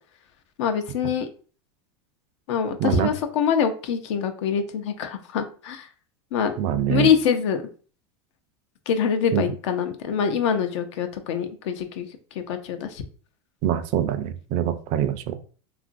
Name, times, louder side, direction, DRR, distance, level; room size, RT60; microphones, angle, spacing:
voice 1, 0.6-1.3 2.5-5.9 6.3-6.5 6.9-7.6 8.9-12.1 12.5-13.0, left 7 dB, 75° left, 7 dB, 0.6 m, -24 dB
voice 2, 2.8-3.1 6.6-7.1 9.3-9.5 13.6-15.4, right 10 dB, 50° right, 10 dB, 0.4 m, -24 dB
2.9 x 2.4 x 2.5 m, 0.40 s
supercardioid pair, 110°, 15 cm